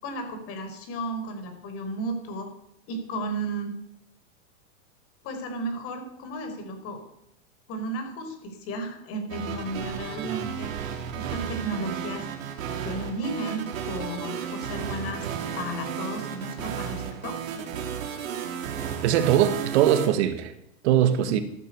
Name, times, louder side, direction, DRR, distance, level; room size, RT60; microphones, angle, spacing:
voice 1, 0.0-2.5 2.9-3.7 5.2-7.0 7.7-10.7 11.1-12.3 12.8-15.3 15.6-17.4, right 1 dB, 35° left, 4.7 m, -34 dB
sound 1, 9.3-20.1, right 8 dB, 90° right, 4.1 m, -33 dB
voice 2, 19.0-20.5 20.8-21.4, right 11 dB, 55° right, 1.9 m, -21 dB
15.0 x 12.0 x 6.9 m
supercardioid pair, 160°, 39 cm